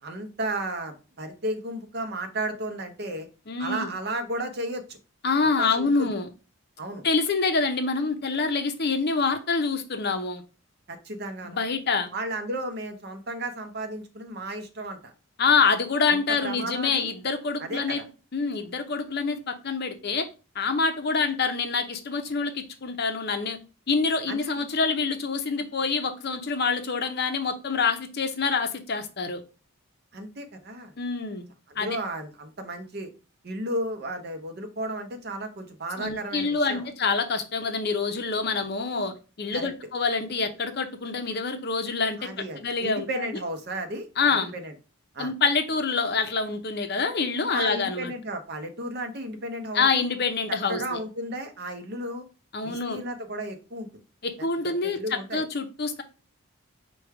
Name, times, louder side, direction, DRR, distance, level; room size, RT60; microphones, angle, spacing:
voice 1, 0.0-3.3 3.6-5.0 5.4-6.1 6.8-7.0 10.9-11.6 12.1-15.1 16.0-17.1 17.6-18.0 24.3-24.6 30.1-30.9 31.7-33.1 33.4-36.9 39.5-39.7 42.2-44.7 45.1-45.3 47.5-50.0 50.7-52.2 52.6-53.9 54.4-55.4, right 1 dB, 45° right, 0.7 m, -34 dB
voice 2, 3.5-3.9 5.2-6.3 7.0-10.4 11.4-12.1 15.4-18.0 18.3-20.3 20.5-23.6 23.9-29.4 31.0-31.5 31.8-32.0 36.0-42.2 42.6-43.1 44.2-44.5 45.2-48.1 49.7-51.0 52.5-53.0 54.2-55.0 55.3-56.0, left 4 dB, 45° left, 0.6 m, -26 dB
5.0 x 2.3 x 4.6 m
head